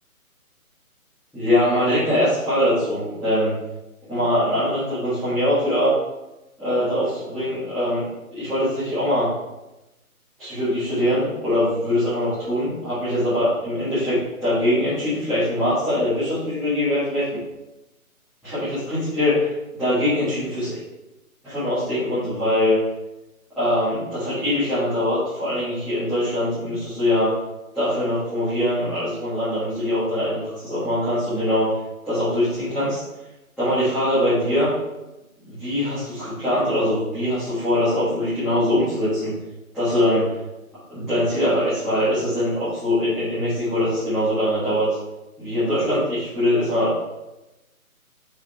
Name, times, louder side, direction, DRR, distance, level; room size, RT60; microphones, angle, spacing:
voice 1, 1.3-3.5 4.1-5.9 6.6-8.0 8.3-9.3 10.4-17.2 18.4-20.8 21.4-22.8 23.5-27.3 27.7-31.7 32.0-33.0 33.6-34.7 35.4-39.3 39.7-40.3 40.9-44.9 45.4-46.9, left 1 dB, ahead, -19 dB, 1.5 m, -22 dB
6.6 x 5.1 x 4.4 m, 0.97 s
hypercardioid pair, 170°, 44 cm